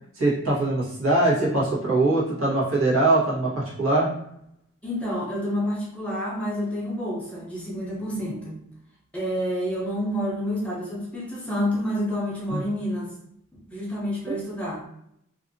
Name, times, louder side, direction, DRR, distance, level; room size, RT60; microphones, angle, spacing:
voice 1, 0.2-4.1 12.5-12.6 14.3-14.4, right 2 dB, 70° right, -6 dB, 1.1 m, -22 dB
voice 2, 4.8-8.6 9.1-13.1 13.7-14.8, equal, 5° left, -5 dB, 0.6 m, -28 dB
2.6 x 2.5 x 2.6 m, 0.74 s
head